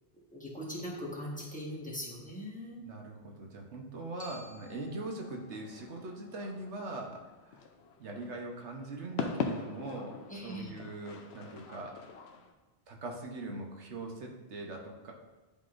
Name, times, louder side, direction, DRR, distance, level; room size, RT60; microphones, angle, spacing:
voice 1, 0.3-2.8 10.3-10.7, equal, 5° left, -5 dB, 1.3 m, -40 dB
voice 2, 2.8-7.6 8.0-12.0 12.9-15.1, right 2 dB, 85° right, 1 dB, 1.3 m, -41 dB
Glockenspiel, 4.2-8.3, left 3 dB, 25° left, 0.7 m, -57 dB
sound 1, 5.3-12.5, left 5 dB, 75° left, 0.9 m, -42 dB
10.5 x 3.9 x 2.5 m, 1.2 s
omnidirectional pair, 1.1 m